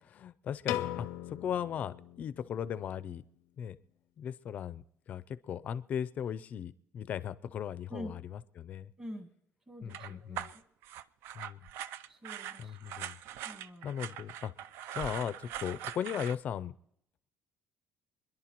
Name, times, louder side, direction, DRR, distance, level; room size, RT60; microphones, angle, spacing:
voice 1, 0.0-3.2 3.6-3.8 4.2-8.9 9.8-10.5 11.3-11.7 12.6-13.2 13.8-14.5 14.9-16.7, left 8 dB, 40° left, 16 dB, 0.4 m, -37 dB
Piano, 0.7-2.9, left 13 dB, 90° left, 0.5 m, -39 dB
voice 2, 9.0-9.3 9.7-10.6 12.1-12.8 13.4-13.9, equal, 15° right, 7 dB, 1.3 m, -46 dB
sound 1, 9.9-16.3, right 11 dB, 75° right, 0.4 m, -42 dB
27.5 x 11.0 x 3.0 m, 0.74 s
cardioid pair, 170°, 4 cm